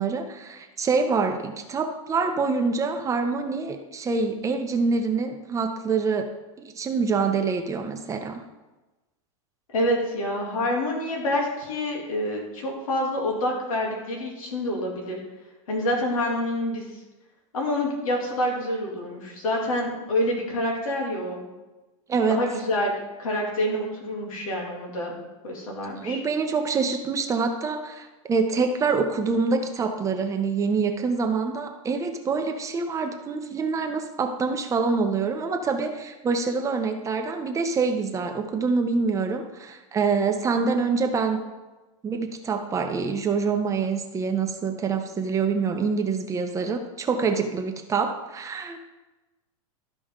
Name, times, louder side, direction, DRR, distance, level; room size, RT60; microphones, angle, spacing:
voice 1, 0.0-6.3 6.6-8.4 22.1-22.4 26.0-41.4 42.0-48.8, right 4 dB, 20° right, 5 dB, 0.7 m, -26 dB
voice 2, 9.7-15.2 15.7-16.9 17.5-21.4 22.3-22.9 23.2-25.2 25.4-26.2, left 1 dB, 90° left, -1 dB, 2.8 m, -27 dB
13.0 x 5.1 x 3.7 m, 1.1 s
supercardioid pair, 135°, 17 cm